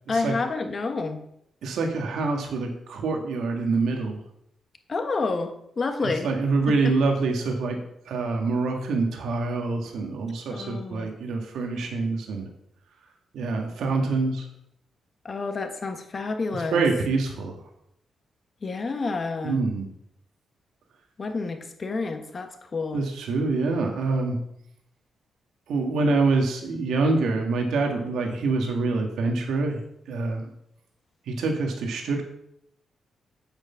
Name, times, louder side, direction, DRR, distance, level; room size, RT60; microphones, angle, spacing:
voice 1, 0.1-1.2 4.9-6.3 6.7-6.9 10.5-11.1 15.2-16.8 18.6-19.6 21.2-23.0, left 3 dB, 35° left, 6 dB, 1.3 m, -29 dB
voice 2, 1.6-4.2 6.2-7.8 8.1-12.5 13.3-14.5 16.7-17.5 19.4-19.9 22.9-24.4 25.7-29.8 30.1-30.4 31.3-32.2, right 3 dB, 90° right, 2 dB, 1.9 m, -25 dB
8.4 x 7.9 x 5.7 m, 0.75 s
cardioid pair, 120°, 0 cm